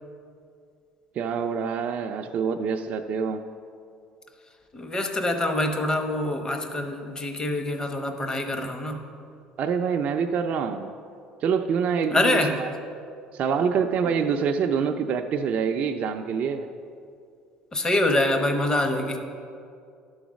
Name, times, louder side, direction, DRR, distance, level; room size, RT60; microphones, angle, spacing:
voice 1, 1.2-3.5 9.6-10.9 11.4-12.7 13.3-16.7, right 6 dB, 55° right, 4 dB, 0.4 m, -26 dB
voice 2, 4.7-9.1 12.1-12.6 14.0-14.1 17.7-19.2, left 1 dB, 25° left, 5 dB, 0.9 m, -25 dB
11.0 x 3.9 x 6.3 m, 2.4 s
supercardioid pair, 100°, 3 cm